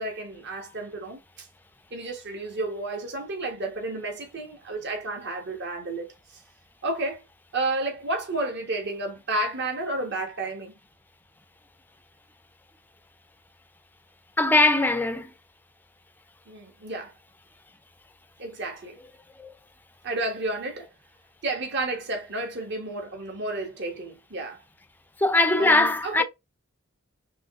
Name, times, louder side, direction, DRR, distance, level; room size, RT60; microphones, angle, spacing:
voice 1, 0.0-1.5 1.9-6.1 6.3-6.4 6.8-7.2 7.5-10.7 16.5-17.1 18.4-19.0 20.0-20.9 21.4-24.6 25.6-26.2, right 2 dB, 55° right, 1.5 m, -31 dB
voice 2, 14.4-15.3 19.4-19.5 25.2-26.2, left 2 dB, 10° left, 0.5 m, -21 dB
4.8 x 3.1 x 2.5 m
head